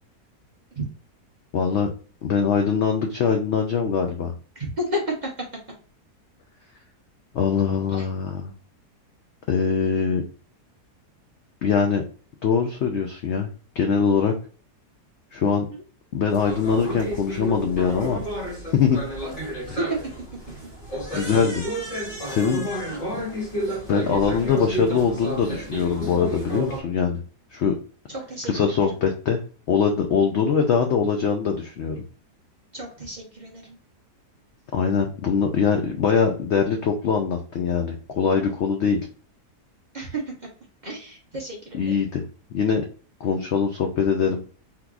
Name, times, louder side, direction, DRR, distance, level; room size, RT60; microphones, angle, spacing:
voice 1, 1.5-1.9 2.2-4.3 7.3-8.5 9.5-10.2 11.6-12.0 12.4-13.5 13.8-14.3 15.3-15.7 16.1-18.2 18.7-19.0 19.7-19.8 21.1-21.7 22.3-22.6 23.9-27.2 27.5-27.7 28.4-29.4 29.7-32.0 34.7-39.0 41.7-42.2 42.5-42.8 43.2-44.4, left 6 dB, 80° left, 3 dB, 0.6 m, -22 dB
voice 2, 4.8-5.3 7.9-8.0 19.4-19.7 21.1-21.2 22.9-23.0 28.3-28.5 32.7-33.6 39.9-40.2 40.8-41.8, equal, 40° right, -3 dB, 0.6 m, -31 dB
sound 1, 16.3-26.8, right 1 dB, 30° left, 1.2 m, -31 dB
3.7 x 2.9 x 2.4 m, 0.39 s
omnidirectional pair, 1.7 m